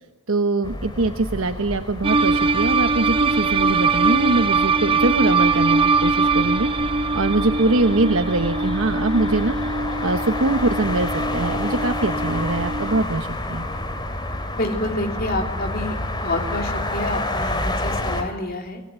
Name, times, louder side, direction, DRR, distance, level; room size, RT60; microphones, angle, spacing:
voice 1, 0.3-6.7 7.1-9.6 10.0-13.7, right 2 dB, 85° right, 8 dB, 1.1 m, -23 dB
sound 1, 0.6-18.2, left 1 dB, 20° left, 2.8 m, -29 dB
sound 2, 2.0-13.0, right 3 dB, 25° right, 1.0 m, -22 dB
voice 2, 14.6-15.9 16.2-18.8, left 2 dB, 50° left, 4 dB, 3.3 m, -28 dB
25.5 x 19.5 x 9.1 m, 1.1 s
head